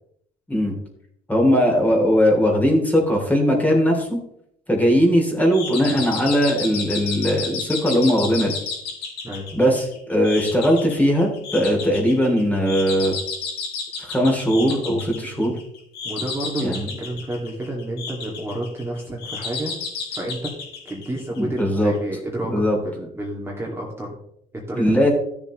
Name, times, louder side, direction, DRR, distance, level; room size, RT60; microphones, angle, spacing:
voice 1, 1.3-4.2 4.7-8.5 9.6-13.1 14.0-15.5 16.6-16.9 21.4-21.9 22.5-22.8 24.7-25.1, equal, 10° left, 0 dB, 3.0 m, -19 dB
sound 1, 5.5-21.6, left 5 dB, 80° left, 3.0 m, -32 dB
voice 2, 16.0-19.8 20.1-20.6 20.8-24.2 24.5-25.1, right 1 dB, 15° right, -3 dB, 2.3 m, -30 dB
13.5 x 7.2 x 3.2 m, 0.72 s
cardioid pair, 110°, 17 cm